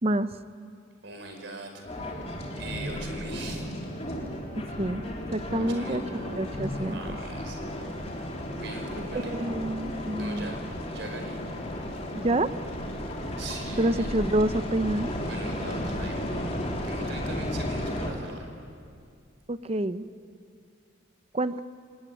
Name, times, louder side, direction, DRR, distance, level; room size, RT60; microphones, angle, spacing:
voice 1, 1.0-2.3 2.6-3.6 5.5-6.1 6.8-7.6 8.5-9.3 10.2-11.5 12.0-12.1 13.3-14.1 15.3-18.5, right 2 dB, 65° right, 4 dB, 5.0 m, -41 dB
sound 1, 1.8-18.1, equal, 30° left, 3.5 m, -34 dB
voice 2, 4.6-7.2 9.1-10.5 12.1-12.5 13.8-15.1 19.5-20.1 21.3-21.6, right 1 dB, 30° right, 12 dB, 0.7 m, -28 dB
28.0 x 19.0 x 9.6 m, 2.3 s
head